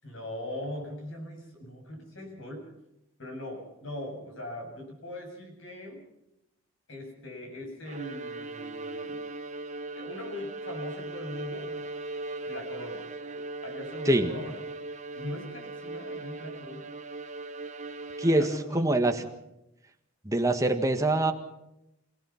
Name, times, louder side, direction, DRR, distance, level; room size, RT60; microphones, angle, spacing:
voice 1, 0.0-2.7 3.2-6.1 6.9-9.2 10.0-11.9 12.4-13.1 13.6-14.6 15.1-16.9 18.3-19.0, left 1 dB, 65° left, 3 dB, 7.6 m, -40 dB
Bowed string instrument, 7.9-18.9, right 2 dB, 35° right, 1.3 m, -39 dB
voice 2, 18.7-19.1 20.3-21.3, right 1 dB, 15° right, 5 dB, 1.7 m, -23 dB
27.0 x 17.5 x 5.8 m, 0.87 s
head